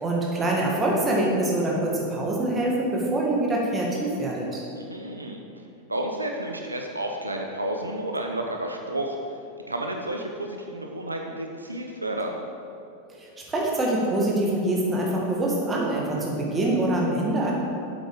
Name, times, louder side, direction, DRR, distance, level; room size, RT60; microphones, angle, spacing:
voice 1, 0.0-4.6 13.1-17.5, right 1 dB, 15° right, -3 dB, 2.1 m, -25 dB
voice 2, 4.7-5.4 5.9-9.2 9.7-12.4, right 1 dB, 80° right, 2 dB, 0.7 m, -31 dB
8.2 x 7.8 x 5.2 m, 2.6 s
figure-of-eight pair, 90°, 0 cm